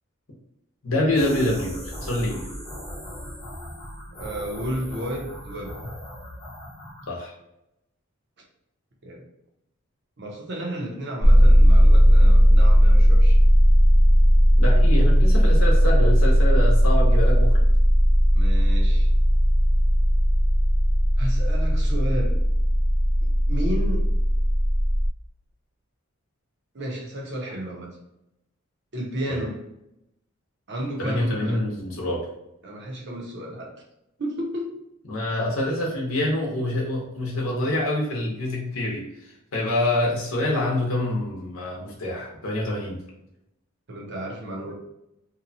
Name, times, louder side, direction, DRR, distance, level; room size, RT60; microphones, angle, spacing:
voice 1, 0.8-2.4 7.1-7.3 14.6-17.6 29.3-29.4 31.0-32.3 35.1-39.0 39.5-43.0, left 1 dB, 75° left, -3 dB, 0.8 m, -26 dB
sound 1, 1.0-7.1, equal, 25° left, 0.9 m, -38 dB
voice 2, 4.1-5.8 9.0-9.2 10.2-13.4 18.3-19.1 21.2-22.4 23.5-24.1 26.7-27.9 28.9-29.6 30.7-31.6 32.6-33.8 34.2-34.8 43.9-44.7, right 1 dB, 55° right, 0 dB, 0.7 m, -32 dB
sound 2, 11.2-25.1, equal, 5° right, 0.6 m, -17 dB
2.8 x 2.2 x 2.6 m, 0.84 s
head